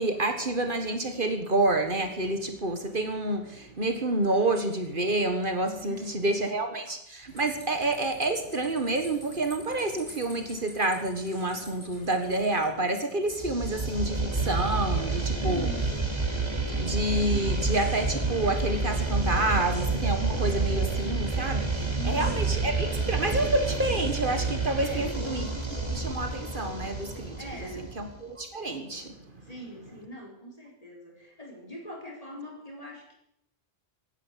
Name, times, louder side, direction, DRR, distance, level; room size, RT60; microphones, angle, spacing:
voice 1, 0.0-15.7 16.8-29.4, right 2 dB, 55° right, 6 dB, 1.8 m, -29 dB
voice 2, 5.8-6.4 15.4-16.2 22.0-22.5 24.8-25.2 27.4-28.0 29.4-33.1, equal, 35° left, 0 dB, 4.2 m, -41 dB
sound 1, 7.3-12.7, left 1 dB, 90° left, 6.0 m, -49 dB
sound 2, 13.4-28.2, right 3 dB, 25° right, 2.6 m, -29 dB
16.5 x 10.0 x 7.4 m, 0.78 s
omnidirectional pair, 1.1 m